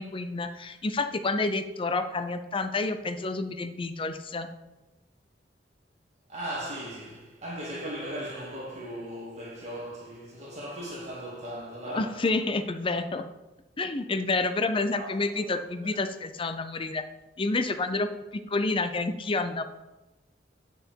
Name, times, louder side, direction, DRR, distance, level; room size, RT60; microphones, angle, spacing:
voice 1, 0.0-4.5 11.9-13.2 13.8-17.0 17.4-19.6, left 3 dB, 30° left, 0.5 m, -29 dB
voice 2, 6.3-12.2 14.9-15.6, equal, 40° right, 2.6 m, -38 dB
8.1 x 6.4 x 4.5 m
head